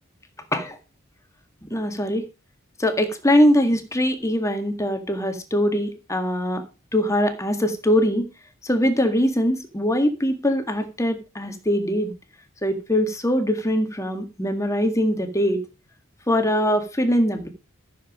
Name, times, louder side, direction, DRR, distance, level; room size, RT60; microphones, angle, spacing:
voice 1, 1.7-2.3 2.8-6.6 6.9-8.3 8.6-12.1 12.6-15.6 16.3-17.5, equal, 15° left, 6 dB, 1.8 m, -22 dB
14.0 x 7.4 x 5.0 m, 0.30 s
head